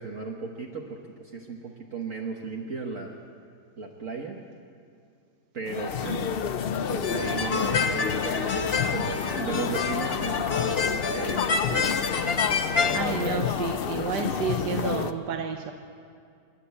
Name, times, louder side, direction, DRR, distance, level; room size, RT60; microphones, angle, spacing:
voice 1, 0.0-3.2 3.8-4.4 5.5-6.6 6.9-11.4 11.7-12.1 12.7-13.5, right 4 dB, 50° right, -1 dB, 1.7 m, -36 dB
sound 1, 5.7-15.1, left 7 dB, 65° left, 0.6 m, -29 dB
sound 2, 7.0-13.0, left 4 dB, 40° left, 1.2 m, -28 dB
voice 2, 12.9-15.7, right 7 dB, 85° right, 4 dB, 1.6 m, -31 dB
28.0 x 11.5 x 8.4 m, 2.3 s
omnidirectional pair, 1.8 m